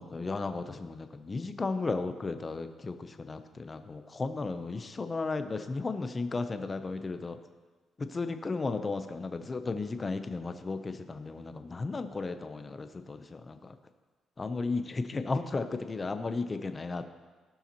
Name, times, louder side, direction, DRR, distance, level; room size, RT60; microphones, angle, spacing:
voice 1, 0.0-7.4 8.0-13.7 14.4-17.1, left 3 dB, 30° left, 9 dB, 0.7 m, -34 dB
17.0 x 5.6 x 3.0 m, 1.3 s
cardioid pair, 90°, 0 cm